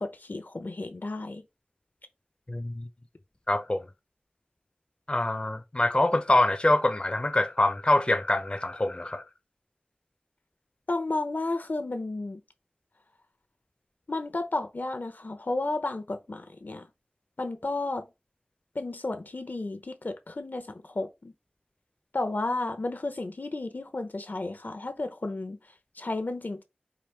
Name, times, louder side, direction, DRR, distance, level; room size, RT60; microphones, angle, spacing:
voice 1, 0.0-1.4 10.9-12.4 14.1-16.9 17.4-18.1 18.7-21.3 22.1-25.6 26.0-26.6, left 2 dB, 70° left, 0.8 m, -32 dB
voice 2, 2.5-2.9 3.5-3.8 5.1-9.2, left 1 dB, 30° left, 0.5 m, -25 dB
5.0 x 2.6 x 3.3 m
wide cardioid pair, 50°, 3 cm